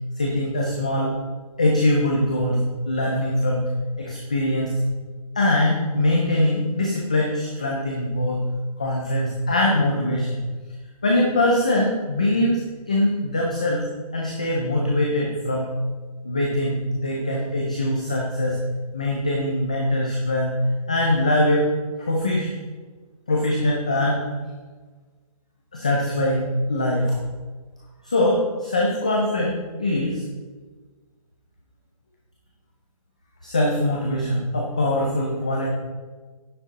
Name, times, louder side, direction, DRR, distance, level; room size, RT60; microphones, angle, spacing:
voice 1, 0.2-1.1 1.6-3.6 4.0-4.7 5.4-8.4 8.8-10.3 11.0-15.7 16.2-18.6 18.9-20.5 20.9-21.7 22.0-22.5 23.3-24.2 25.7-27.2 28.0-30.2 33.4-35.7, left 1 dB, 10° left, -2 dB, 0.4 m, -22 dB
9.9 x 7.3 x 3.9 m, 1.4 s
hypercardioid pair, 175°, 19 cm